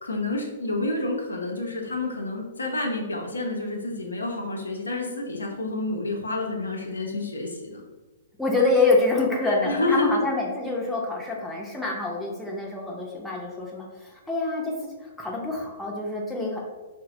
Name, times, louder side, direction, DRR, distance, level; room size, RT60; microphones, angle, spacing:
voice 1, 0.0-7.8 9.6-10.2, left 2 dB, 85° left, 0 dB, 0.5 m, -29 dB
voice 2, 8.4-14.7 15.0-16.6, left 3 dB, 5° left, -3 dB, 0.6 m, -26 dB
3.9 x 2.1 x 2.8 m, 1.2 s
figure-of-eight pair, 115°, 0 cm